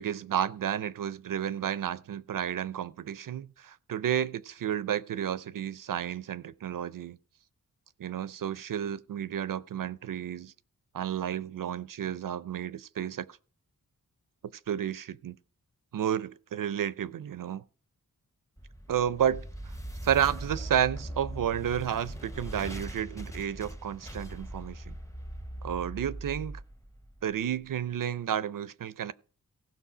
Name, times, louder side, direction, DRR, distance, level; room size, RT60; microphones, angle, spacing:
voice 1, 0.0-7.2 8.0-10.5 10.9-13.3 14.7-15.4 15.9-17.6 18.9-19.4 20.0-24.9 25.6-26.6 27.2-29.1, right 9 dB, 60° right, 0.5 m, -31 dB
sound 1, 18.6-27.7, right 1 dB, 10° left, 0.8 m, -41 dB
16.0 x 6.1 x 4.9 m
wide cardioid pair, 85°, 36 cm